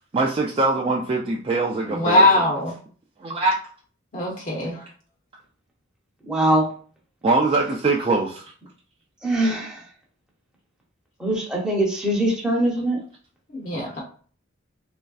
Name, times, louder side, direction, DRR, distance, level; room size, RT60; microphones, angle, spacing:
voice 1, 0.1-2.3 3.2-3.6 7.2-8.4 13.7-14.0, right 3 dB, 25° right, -2 dB, 0.3 m, -22 dB
voice 2, 1.9-2.7 4.1-4.8 13.5-14.0, left 1 dB, 40° left, -2 dB, 0.7 m, -21 dB
voice 3, 6.3-6.7 9.2-9.8 11.2-13.0, right 1 dB, 5° right, -3 dB, 0.7 m, -22 dB
3.2 x 2.5 x 2.3 m, 0.43 s
head